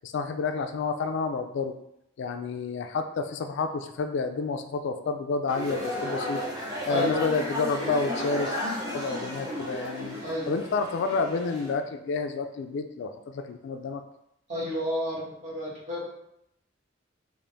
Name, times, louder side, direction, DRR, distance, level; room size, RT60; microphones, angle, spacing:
voice 1, 0.0-1.7 2.2-6.4 6.9-8.6 8.9-10.2 10.5-14.0, left 4 dB, 65° left, 7 dB, 0.3 m, -29 dB
sound 1, 5.5-11.7, left 1 dB, 20° right, 1.0 m, -33 dB
voice 2, 6.9-7.3 10.2-10.6 14.5-16.1, equal, 40° right, -7 dB, 1.5 m, -31 dB
3.8 x 2.5 x 3.4 m, 0.79 s
head